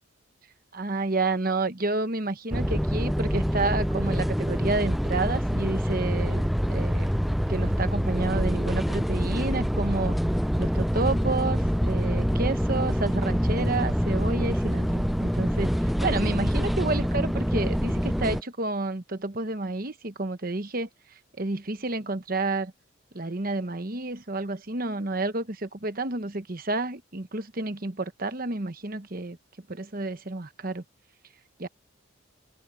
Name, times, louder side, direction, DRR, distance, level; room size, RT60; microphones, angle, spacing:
voice 1, 0.7-7.1 7.5-10.1 10.6-20.9 21.4-22.7 23.1-29.4 29.7-30.8 31.6-31.7, right 3 dB, 45° right, 1.1 m, -30 dB
sound 1, 2.5-18.4, equal, ahead, 0.3 m, -26 dB
head